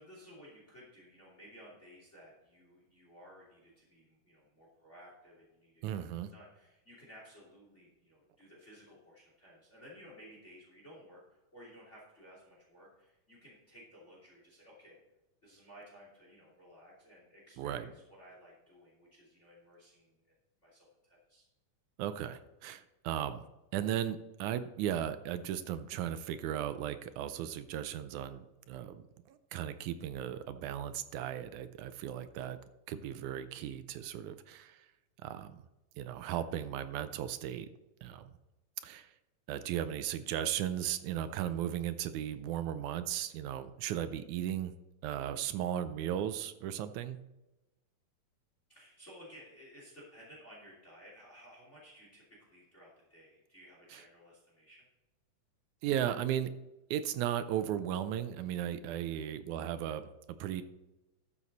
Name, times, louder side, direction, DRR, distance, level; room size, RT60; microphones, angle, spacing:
voice 1, 0.0-15.0 15.4-20.2 20.6-21.4 48.7-54.9 58.9-59.2, equal, 20° left, -3 dB, 2.9 m, -56 dB
voice 2, 5.8-6.3 17.6-17.9 22.0-23.4 23.7-32.6 32.9-34.9 35.2-35.6 36.0-37.7 38.0-38.2 38.8-39.1 39.5-44.7 45.0-47.2 53.9-54.0 55.8-56.5 56.9-60.1 60.4-60.6, right 10 dB, 80° right, 11 dB, 2.0 m, -36 dB
12.5 x 7.4 x 4.1 m, 1.0 s
omnidirectional pair, 3.6 m